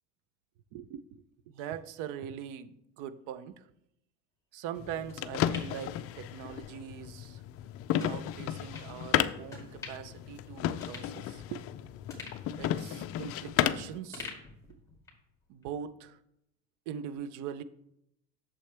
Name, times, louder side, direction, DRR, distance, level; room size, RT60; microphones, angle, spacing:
voice 1, 0.7-3.7 4.5-7.4 8.0-11.7 12.5-14.4 14.7-14.8 15.5-16.2 16.9-17.6, right 9 dB, 60° right, 15 dB, 0.7 m, -42 dB
sound 1, 4.8-14.0, left 11 dB, 40° left, 0.4 m, -33 dB
sound 2, 5.1-6.7 7.1-7.2 8.0-8.2 8.7-8.9 9.5-10.2 10.5-10.6 10.8-11.7 12.1-13.7 14.1-15.3 15.6-15.7, left 4 dB, 10° left, 2.3 m, -47 dB
8.5 x 7.0 x 3.4 m, 0.79 s
supercardioid pair, 115°, 36 cm